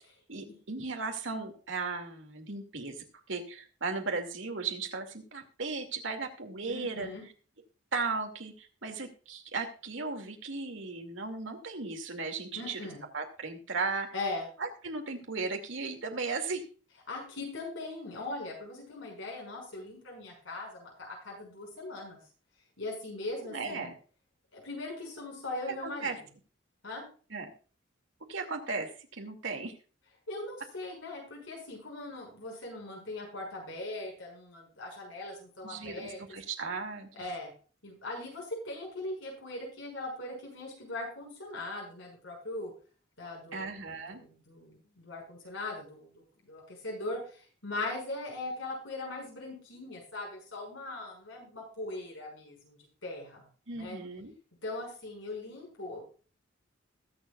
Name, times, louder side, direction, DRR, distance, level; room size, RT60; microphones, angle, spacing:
voice 1, 0.3-7.1 7.9-12.8 13.1-14.1 14.6-16.6 23.4-23.9 25.8-26.2 27.3-27.5 28.3-29.8 35.6-37.1 43.5-44.2 53.7-54.3, right 4 dB, 75° right, 4 dB, 2.4 m, -36 dB
voice 2, 6.7-7.2 12.6-13.0 14.1-14.5 17.1-22.2 22.8-23.9 24.5-26.1 26.8-27.0 30.3-36.2 37.1-37.5 37.8-42.7 43.2-43.7 44.1-53.5 53.8-54.0 54.6-56.1, left 2 dB, 75° left, -1 dB, 6.2 m, -40 dB
21.0 x 7.1 x 2.4 m, 0.38 s
head